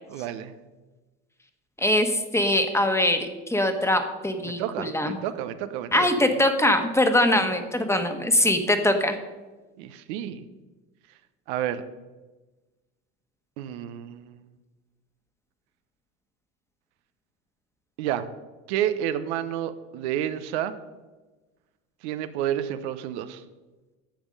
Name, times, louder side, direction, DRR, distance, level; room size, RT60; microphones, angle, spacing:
voice 1, 0.1-0.5 4.4-6.3 9.8-10.5 11.5-11.8 13.6-14.5 18.0-18.3 18.7-20.7 22.0-23.4, right 11 dB, 75° right, 11 dB, 0.8 m, -30 dB
voice 2, 1.8-5.2 5.9-9.2, left 1 dB, 10° left, 7 dB, 1.3 m, -22 dB
10.5 x 7.2 x 5.3 m, 1.2 s
hypercardioid pair, 90°, 35 cm